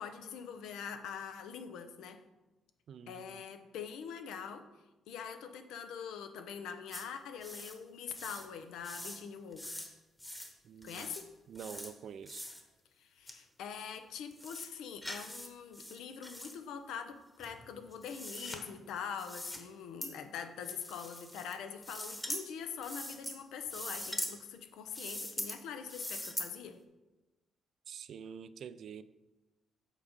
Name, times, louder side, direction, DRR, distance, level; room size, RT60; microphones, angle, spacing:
voice 1, 0.0-2.2 3.1-4.6 5.1-9.8 10.8-11.3 13.0-26.8, left 7 dB, 85° left, 0.6 m, -44 dB
voice 2, 2.9-3.4 10.6-11.1 11.5-12.5 27.9-29.0, right 7 dB, 65° right, 0.3 m, -47 dB
sound 1, 6.9-7.0 7.4-7.8 8.1-8.5 8.8-9.2 9.5-9.9 10.2-10.5 10.8-11.2 11.6-11.9 12.3-12.6 13.3-13.4 13.8-13.9 14.3-14.7 15.0-15.5 15.7-16.5 17.4-18.6 19.2-19.6 20.0-20.1 20.6-21.5 21.8-22.4 22.8-23.4 23.7-24.3 24.9-25.6 25.9-26.5, left 1 dB, 10° left, 1.1 m, -42 dB
7.4 x 4.0 x 5.1 m
cardioid pair, 90°, 0 cm